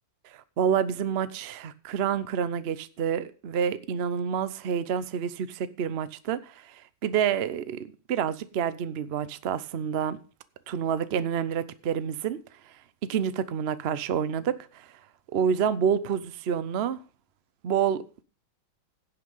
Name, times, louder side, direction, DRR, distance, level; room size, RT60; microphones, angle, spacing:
voice 1, 0.2-10.2 10.7-12.4 12.6-15.0 15.3-17.0 17.6-18.2, right 8 dB, 85° right, 0.5 m, -28 dB
16.5 x 5.9 x 5.5 m
omnidirectional pair, 2.2 m